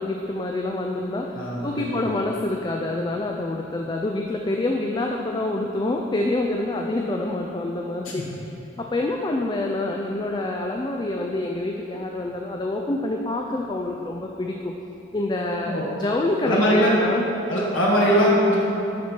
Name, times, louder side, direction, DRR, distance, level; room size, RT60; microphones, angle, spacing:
voice 1, 0.0-8.2 8.8-14.7 15.1-15.7 16.0-17.3, left 2 dB, 20° left, 1 dB, 0.3 m, -27 dB
voice 2, 1.3-1.9 8.1-8.2 15.6-15.9 16.4-16.9 17.5-18.7, equal, 75° left, -5 dB, 1.6 m, -21 dB
12.0 x 4.4 x 4.5 m, 3.0 s
head